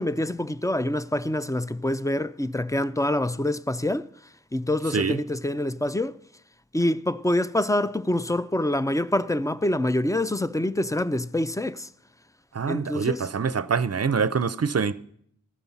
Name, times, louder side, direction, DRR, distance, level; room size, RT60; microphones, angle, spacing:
voice 1, 0.0-4.1 4.5-6.2 6.7-11.9 12.7-13.2, left 1 dB, 10° left, 0.4 m, -26 dB
voice 2, 12.5-14.9, right 5 dB, 50° right, 0.5 m, -25 dB
14.0 x 5.4 x 7.1 m
wide cardioid pair, 45°, 32 cm